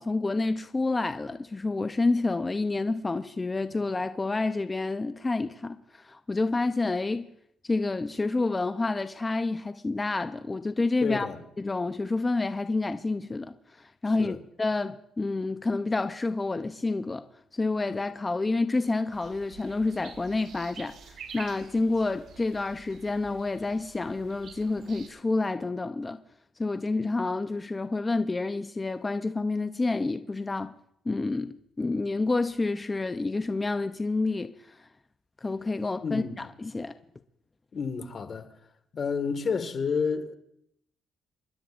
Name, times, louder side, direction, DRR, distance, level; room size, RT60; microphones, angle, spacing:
voice 1, 0.0-7.3 7.7-11.3 11.6-13.5 14.0-17.2 17.5-20.9 21.3-26.2 26.6-30.7 31.1-34.5 35.4-36.9, left 3 dB, 20° left, 0.6 m, -29 dB
voice 2, 11.0-11.4 14.2-14.4 36.0-36.5 37.7-38.5 38.9-40.3, left 5 dB, 50° left, 1.7 m, -30 dB
sound 1, 19.1-25.1, right 6 dB, 70° right, 2.1 m, -48 dB
27.5 x 11.5 x 2.5 m
cardioid pair, 90°, 0 cm